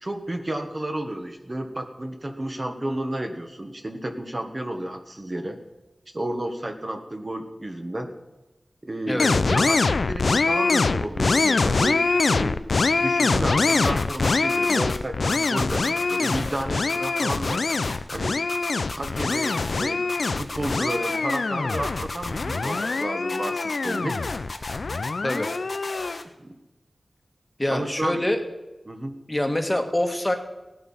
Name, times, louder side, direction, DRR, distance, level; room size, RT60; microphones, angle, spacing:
voice 1, 0.0-5.6 6.1-8.1 8.8-12.6 13.0-17.6 18.1-18.4 19.0-20.0 20.4-24.2 26.4-26.6 27.7-28.2 28.9-29.2, right 1 dB, 35° right, 4 dB, 1.4 m, -31 dB
voice 2, 9.1-9.4 25.2-25.5 27.6-28.4 29.3-30.3, left 1 dB, 20° left, 5 dB, 1.5 m, -25 dB
sound 1, 9.2-26.2, left 3 dB, 80° left, 0.5 m, -24 dB
sound 2, 13.7-15.0 15.3-16.6 16.9-18.2 18.5-19.8 20.1-21.4 21.7-23.0 23.3-26.2, left 3 dB, 60° left, 1.3 m, -35 dB
17.0 x 11.0 x 5.6 m, 1.0 s
wide cardioid pair, 80°, 0 cm